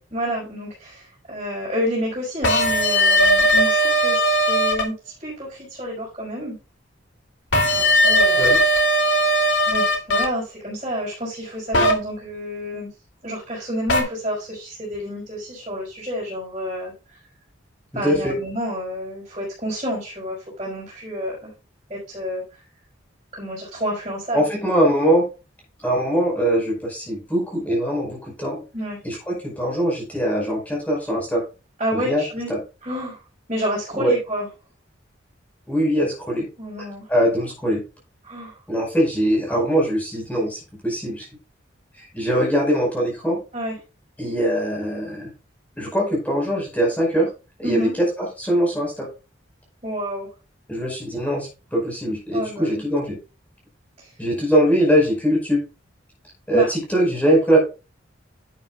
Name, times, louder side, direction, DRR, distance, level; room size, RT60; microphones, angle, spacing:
voice 1, 0.1-6.6 7.7-8.4 9.7-12.9 13.2-17.2 17.9-21.5 21.9-22.6 23.3-24.4 28.7-29.0 31.8-32.5 32.8-33.2 33.5-34.5 36.6-37.1 38.2-38.6 43.5-43.8 47.6-47.9 49.8-50.3 52.3-52.8 54.0-54.1 56.5-56.7, equal, 30° right, -6 dB, 5.3 m, -29 dB
sound 1, 2.4-4.8 7.5-10.2 11.7-11.9 13.9-14.0, equal, 75° left, 2.6 m, -18 dB
voice 2, 18.0-18.3 24.3-25.2 25.8-28.6 29.0-31.4 31.9-32.2 32.5-32.6 33.9-34.1 35.7-36.5 37.1-37.8 38.7-41.3 42.0-43.4 44.2-45.3 45.8-47.3 47.6-49.1 50.7-53.2 54.2-55.6 56.5-57.6, equal, 10° left, -2 dB, 4.8 m, -22 dB
11.0 x 9.0 x 2.3 m, 0.29 s
head